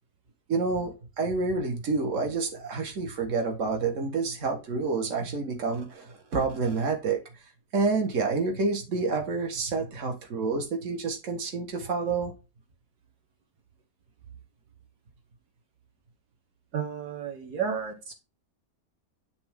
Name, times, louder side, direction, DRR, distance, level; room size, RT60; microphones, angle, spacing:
voice 1, 0.5-7.2 7.7-12.3, right 4 dB, 50° right, 1.8 m, -28 dB
voice 2, 16.7-18.1, right 7 dB, 75° right, 1.7 m, -32 dB
10.5 x 3.5 x 3.6 m
omnidirectional pair, 1.7 m